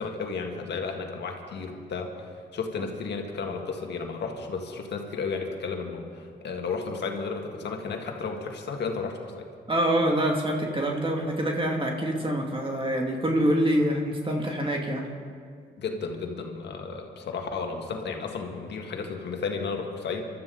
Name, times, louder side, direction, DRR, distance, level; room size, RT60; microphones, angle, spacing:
voice 1, 0.0-9.5 15.8-20.3, left 4 dB, 80° left, 3 dB, 1.8 m, -33 dB
voice 2, 9.7-15.1, right 1 dB, 30° right, 0 dB, 2.4 m, -25 dB
25.5 x 12.5 x 3.9 m, 2.1 s
supercardioid pair, 50°, 18 cm